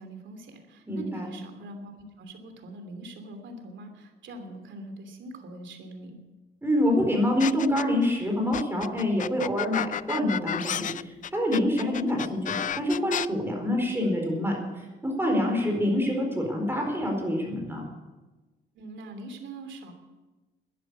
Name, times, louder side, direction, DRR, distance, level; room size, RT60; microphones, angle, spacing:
voice 1, 0.0-6.2 18.7-19.9, right 2 dB, 70° right, 6 dB, 3.0 m, -42 dB
voice 2, 0.9-1.3 6.6-17.8, left 1 dB, 10° right, 1 dB, 4.4 m, -26 dB
sound 1, 7.4-8.1 8.5-13.3, left 9 dB, 40° left, 0.4 m, -31 dB
12.0 x 10.5 x 8.5 m, 1.2 s
cardioid pair, 90°, 20 cm